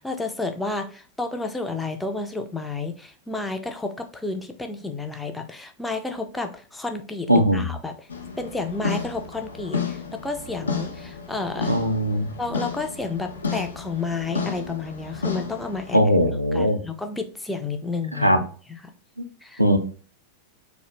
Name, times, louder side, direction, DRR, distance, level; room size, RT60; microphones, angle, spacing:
voice 1, 0.0-8.1 8.4-11.7 12.4-16.0 16.5-18.4 18.7-18.9 19.4-19.6, left 3 dB, 5° left, 6 dB, 0.3 m, -31 dB
voice 2, 7.3-7.6 11.7-12.3 15.9-16.8 18.2-18.4 19.6-19.8, equal, 90° right, 6 dB, 0.3 m, -19 dB
sound 1, 8.1-16.0, left 5 dB, 70° left, 0.5 m, -32 dB
2.3 x 2.0 x 3.0 m, 0.40 s
figure-of-eight pair, 90°, 0 cm